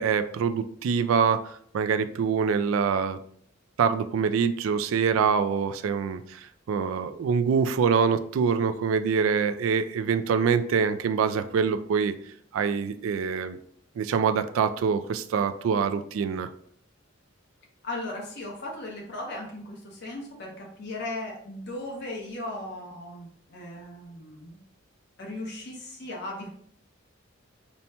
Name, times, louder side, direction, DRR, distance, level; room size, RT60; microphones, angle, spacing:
voice 1, 0.0-3.2 3.8-6.4 6.7-12.1 12.5-13.6 14.0-16.5, right 6 dB, 90° right, 11 dB, 0.3 m, -25 dB
voice 2, 17.8-24.6 25.2-26.5, left 1 dB, 60° left, -1 dB, 0.9 m, -37 dB
5.4 x 2.2 x 2.8 m, 0.62 s
head